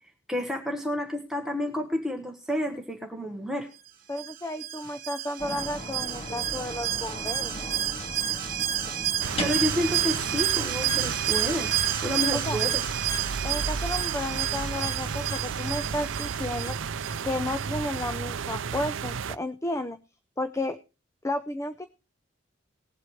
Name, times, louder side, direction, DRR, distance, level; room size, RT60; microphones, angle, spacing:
voice 1, 0.3-3.7 8.3-8.4 9.4-11.7 12.0-12.8, left 1 dB, ahead, 2 dB, 1.2 m, -30 dB
voice 2, 4.1-7.5 12.3-12.6 13.4-16.8 17.2-20.0 20.4-20.8 21.2-21.9, left 1 dB, 15° left, 11 dB, 0.6 m, -32 dB
Alarm, 4.2-17.7 18.0-18.1, right 11 dB, 45° right, 1.6 m, -30 dB
sound 1, 5.4-10.4, left 1 dB, 30° left, 2.5 m, -37 dB
sound 2, 9.2-19.4, right 6 dB, 80° right, 0.5 m, -33 dB
19.5 x 8.0 x 3.1 m, 0.31 s
head